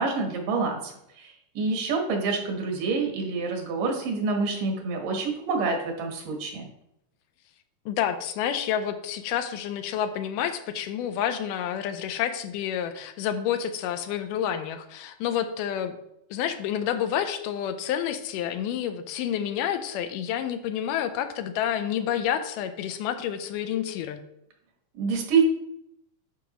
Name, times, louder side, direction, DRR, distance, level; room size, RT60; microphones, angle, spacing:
voice 1, 0.0-6.7 24.9-25.4, right 4 dB, 80° right, 2 dB, 2.8 m, -27 dB
voice 2, 7.9-16.0 16.3-24.2, left 9 dB, 85° left, 9 dB, 2.2 m, -29 dB
11.0 x 4.8 x 3.0 m, 0.80 s
omnidirectional pair, 3.7 m